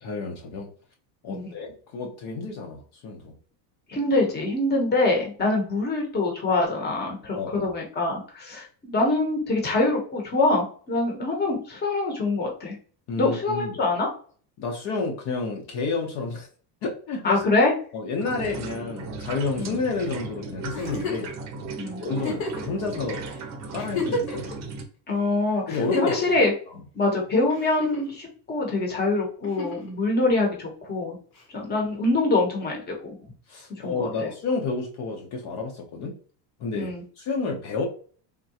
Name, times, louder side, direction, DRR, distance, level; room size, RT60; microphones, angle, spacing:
voice 1, 0.0-0.7 1.2-3.3 7.3-7.7 13.1-13.8 14.6-16.5 16.8-17.4 17.9-21.3 22.0-23.2 23.7-24.4 25.7-26.2 33.5-36.1 36.6-37.8, left 4 dB, 55° left, 1 dB, 0.8 m, -30 dB
voice 2, 3.9-12.8 13.2-14.1 17.2-17.7 19.6-19.7 21.8-22.0 25.1-26.5 26.9-31.2 31.5-33.1 33.8-34.3 36.7-37.0, left 2 dB, 20° left, 0 dB, 0.9 m, -24 dB
sound 1, 18.2-24.8, right 4 dB, 35° right, 0.6 m, -36 dB
Giggle, 20.7-21.3 22.2-22.7 23.3-23.4 23.8-24.5 25.7-26.3 27.5-28.2 29.4-29.9 31.4-31.5, left 3 dB, 80° left, 1.5 m, -30 dB
3.6 x 2.2 x 2.8 m, 0.43 s
cardioid pair, 145°, 47 cm